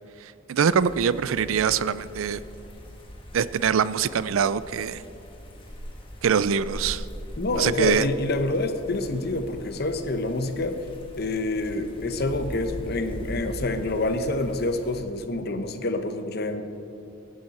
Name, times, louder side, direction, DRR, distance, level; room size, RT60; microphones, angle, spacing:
voice 1, 0.5-2.4 3.3-5.0 6.2-7.0 7.5-8.1, right 7 dB, 90° right, 16 dB, 0.4 m, -23 dB
sound 1, 0.7-15.0, equal, 25° left, 1.5 m, -41 dB
voice 2, 7.4-10.8 11.2-16.6, left 2 dB, 50° left, 8 dB, 0.9 m, -27 dB
17.0 x 10.5 x 4.2 m, 2.7 s
head